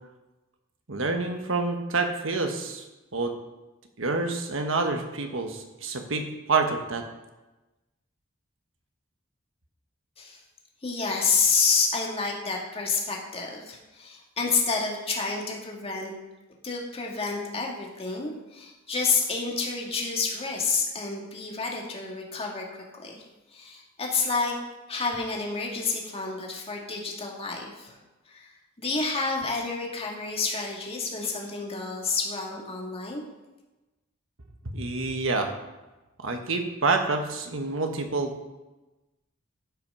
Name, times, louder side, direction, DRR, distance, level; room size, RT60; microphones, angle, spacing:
voice 1, 0.9-2.8 3.1-3.3 4.0-7.0 34.6-35.5 36.2-38.5, right 3 dB, 70° right, 5 dB, 1.4 m, -27 dB
voice 2, 10.8-16.1 16.6-23.2 23.5-24.6 24.9-28.0 28.3-28.5 28.8-33.2, left 4 dB, 30° left, -1 dB, 1.9 m, -29 dB
11.5 x 6.0 x 5.5 m, 1.1 s
head